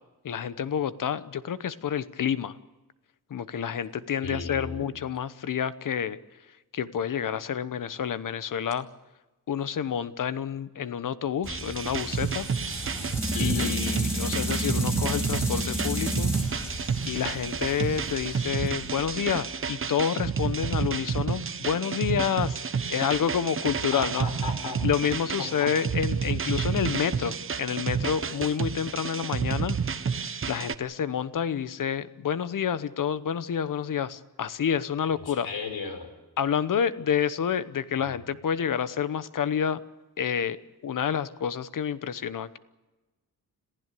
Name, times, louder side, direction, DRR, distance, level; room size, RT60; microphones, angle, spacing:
voice 1, 0.2-2.6 3.3-6.2 6.7-8.9 9.5-12.5 13.4-16.3 17.1-22.6 22.9-24.3 24.8-29.8 30.5-35.5 36.4-39.8 40.2-40.6 40.8-42.6, left 8 dB, 60° left, 14 dB, 1.0 m, -29 dB
voice 2, 4.2-4.9 13.3-13.7 23.7-24.8 25.4-25.7 35.3-36.1 38.0-38.1, left 4 dB, 75° left, 6 dB, 5.2 m, -35 dB
sound 1, 11.4-19.5, equal, 5° left, 4.4 m, -32 dB
sound 2, 11.5-30.7, right 6 dB, 35° right, 0.9 m, -30 dB
26.5 x 15.5 x 8.4 m, 1.1 s
wide cardioid pair, 175°, 37 cm